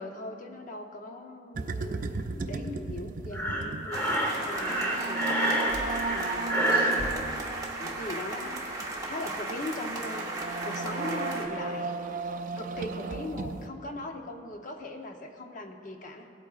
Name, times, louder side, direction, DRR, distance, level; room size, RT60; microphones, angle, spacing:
voice 1, 0.0-2.0 2.3-5.4 6.0-7.5 7.8-8.7 9.0-11.9 12.6-16.3, left 1 dB, 45° left, 4 dB, 0.8 m, -40 dB
sound 1, 1.5-13.7, right 3 dB, 45° right, 0.4 m, -36 dB
Breathing, 3.3-7.1, right 1 dB, 15° left, 1.2 m, -28 dB
sound 2, 3.9-11.5, right 2 dB, 20° right, 1.1 m, -36 dB
17.5 x 8.5 x 2.4 m, 2.7 s
head